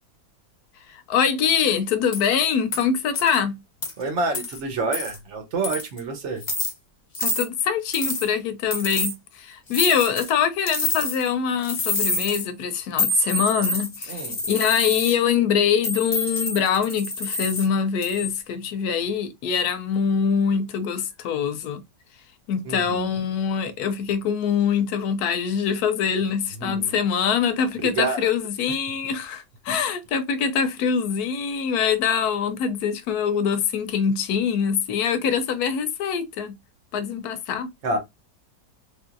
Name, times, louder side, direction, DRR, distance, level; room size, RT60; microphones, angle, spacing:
voice 1, 0.9-3.6 7.2-14.2 14.5-21.8 22.5-36.6 36.9-37.7, left 7 dB, 75° left, 1.0 m, -24 dB
sound 1, 2.1-2.3 2.7-2.8 3.1-3.4 3.8-3.9 4.3-4.6 4.9-5.2 5.6-6.0 6.4-6.7 7.1-7.4 7.9-8.3 8.7-9.1 9.7-10.3 10.7-11.3 11.6-12.4 13.0-15.1 15.8-17.7 18.0-18.4, left 2 dB, 25° left, 0.6 m, -27 dB
voice 2, 4.0-6.4 14.1-14.4 22.6-23.2 26.5-27.0 27.7-28.3 29.0-29.1 37.8-38.0, right 3 dB, 55° right, 0.9 m, -28 dB
3.4 x 2.6 x 2.4 m
omnidirectional pair, 1.8 m